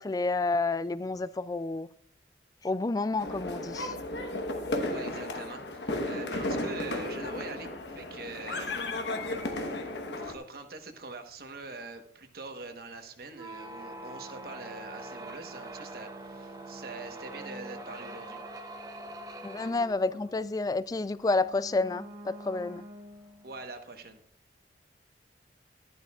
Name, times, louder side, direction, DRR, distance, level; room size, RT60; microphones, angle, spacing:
voice 1, 0.0-1.9 2.6-4.0 19.4-22.9, left 3 dB, 20° left, 0.3 m, -30 dB
sound 1, 3.2-10.3, left 1 dB, 80° left, 1.2 m, -34 dB
voice 2, 4.9-8.9 9.4-9.8 10.2-18.4 23.4-24.2, right 3 dB, 60° right, 1.2 m, -44 dB
sound 2, 13.3-23.6, right 1 dB, 20° right, 0.8 m, -44 dB
12.0 x 11.0 x 2.4 m
head